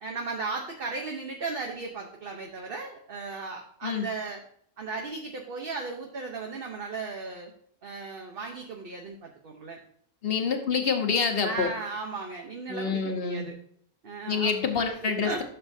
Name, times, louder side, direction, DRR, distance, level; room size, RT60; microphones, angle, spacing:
voice 1, 0.0-4.4 4.8-7.5 7.8-9.8 11.4-13.6 14.0-14.7 15.0-15.4, right 4 dB, 45° right, 1 dB, 1.0 m, -36 dB
voice 2, 10.2-11.7 12.7-13.5 14.2-15.4, left 5 dB, 45° left, 4 dB, 1.2 m, -27 dB
11.0 x 6.7 x 2.7 m, 0.63 s
omnidirectional pair, 1.4 m